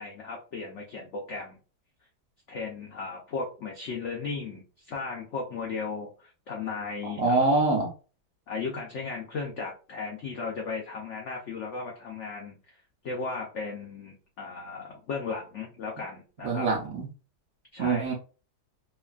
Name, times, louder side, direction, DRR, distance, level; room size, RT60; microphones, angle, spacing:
voice 1, 0.0-1.6 2.5-7.5 8.5-12.8 13.0-16.7 17.7-18.1, left 4 dB, 75° left, 0 dB, 0.6 m, -36 dB
voice 2, 7.0-7.9 16.4-17.1 17.8-18.1, right 3 dB, 65° right, 0 dB, 0.9 m, -25 dB
3.1 x 2.2 x 2.3 m, 0.35 s
omnidirectional pair, 1.9 m